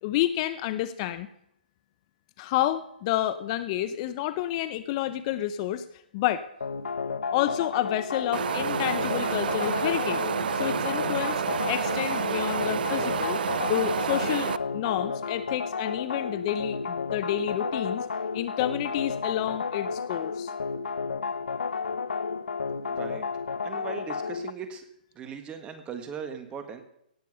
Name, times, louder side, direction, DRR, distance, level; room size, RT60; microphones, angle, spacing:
voice 1, 0.0-1.3 2.4-5.8 6.1-6.5 7.3-10.2 10.5-11.4 11.7-13.4 13.7-18.1 18.3-20.5, left 13 dB, 35° left, 13 dB, 0.6 m, -29 dB
sound 1, 6.6-24.5, left 5 dB, 85° left, 0.6 m, -32 dB
Wind, 8.3-14.6, right 8 dB, 70° right, 0.5 m, -29 dB
voice 2, 22.8-23.2 23.6-24.8 25.1-26.8, right 6 dB, 20° right, 8 dB, 1.6 m, -39 dB
17.5 x 7.4 x 5.6 m, 0.76 s
hypercardioid pair, 135°, 5 cm